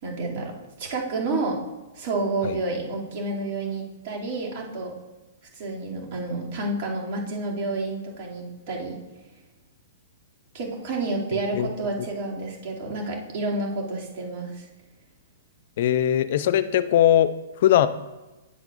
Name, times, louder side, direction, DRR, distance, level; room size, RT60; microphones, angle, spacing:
voice 1, 0.0-1.6 1.9-4.9 5.5-8.9 10.5-14.7, right 2 dB, 50° right, -3 dB, 2.6 m, -29 dB
voice 2, 15.8-17.3 17.6-17.9, left 11 dB, 60° left, 14 dB, 0.5 m, -20 dB
9.4 x 8.1 x 2.6 m, 1.1 s
hypercardioid pair, 120°, 0 cm